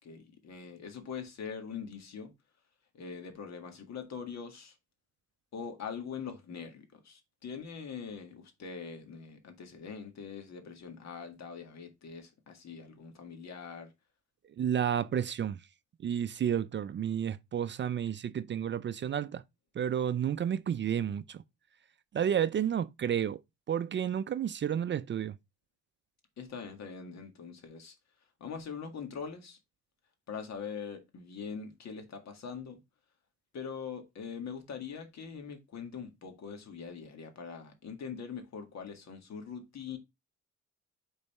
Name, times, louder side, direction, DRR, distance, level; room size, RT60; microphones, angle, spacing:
voice 1, 0.0-2.3 2.9-4.8 5.5-13.9 26.4-27.9 28.4-29.6 30.3-32.8 33.5-40.0, left 6 dB, 60° left, 1.8 m, -42 dB
voice 2, 14.6-15.6 16.0-19.4 19.8-21.4 22.1-23.4 23.7-25.4, right 9 dB, 40° right, 0.4 m, -31 dB
5.4 x 4.0 x 4.2 m
cardioid pair, 90°, 30 cm